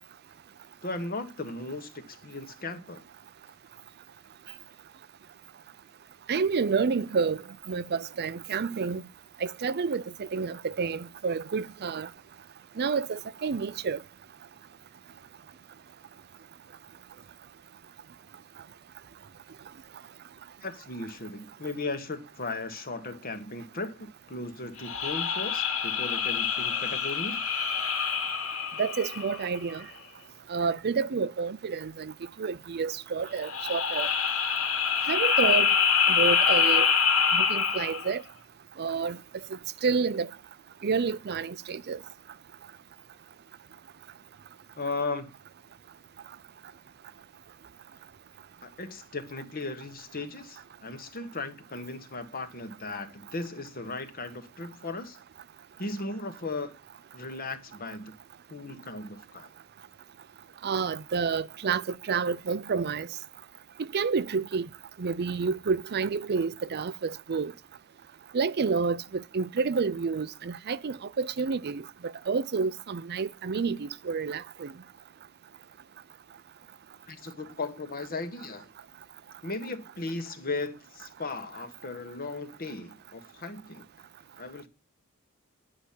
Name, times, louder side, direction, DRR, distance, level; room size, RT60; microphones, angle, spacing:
voice 1, 0.8-3.0 20.6-27.4 44.8-45.3 48.6-55.2 55.8-56.7 57.1-58.1 58.5-59.5 77.1-78.7 79.4-83.9 84.4-84.7, left 3 dB, 45° left, 1.5 m, -37 dB
voice 2, 6.3-7.4 7.7-9.0 9.4-10.0 10.3-12.1 12.8-14.0 28.8-29.8 30.5-32.1 32.4-34.1 35.1-35.7 36.1-36.9 37.3-38.2 38.8-39.2 39.8-40.3 40.8-42.0 60.6-63.1 63.8-64.7 65.0-67.5 68.3-71.8 72.3-74.7, right 5 dB, 50° right, 0.5 m, -29 dB
sound 1, 24.8-29.6 33.4-38.1, left 6 dB, 75° left, 2.3 m, -25 dB
10.5 x 5.9 x 8.5 m
head